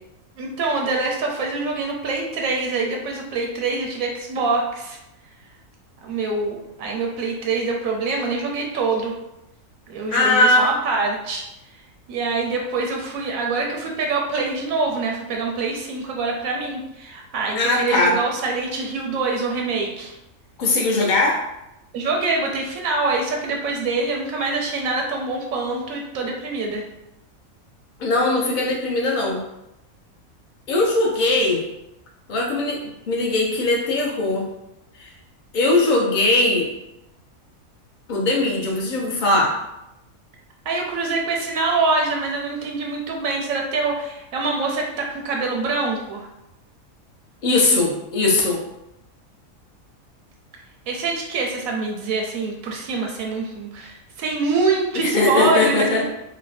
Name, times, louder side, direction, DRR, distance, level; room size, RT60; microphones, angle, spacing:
voice 1, 0.4-5.0 6.0-9.2 9.9-11.4 12.1-20.1 21.9-26.8 40.7-46.3 50.9-56.1, right 3 dB, 80° right, 1 dB, 1.0 m, -25 dB
voice 2, 10.1-10.7 17.5-18.1 20.6-21.4 28.0-29.4 30.7-31.6 32.3-32.8 33.1-34.5 35.0-35.1 35.5-36.7 38.1-39.6 47.4-48.6 54.9-56.0, left 2 dB, 45° left, -2 dB, 0.7 m, -20 dB
3.2 x 2.1 x 4.0 m, 0.90 s
omnidirectional pair, 1.5 m